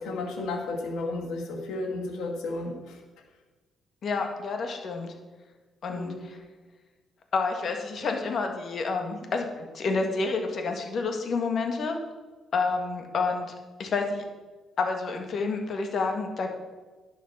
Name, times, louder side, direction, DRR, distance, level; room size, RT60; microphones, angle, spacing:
voice 1, 0.0-3.0 5.9-6.2, left 2 dB, 85° left, 2 dB, 2.0 m, -33 dB
voice 2, 4.0-5.1 5.8-6.4 7.3-12.0 12.5-13.5 13.8-14.2 14.8-16.5, left 4 dB, 55° left, 3 dB, 1.8 m, -29 dB
11.0 x 6.3 x 6.1 m, 1.3 s
cardioid pair, 90°, 0 cm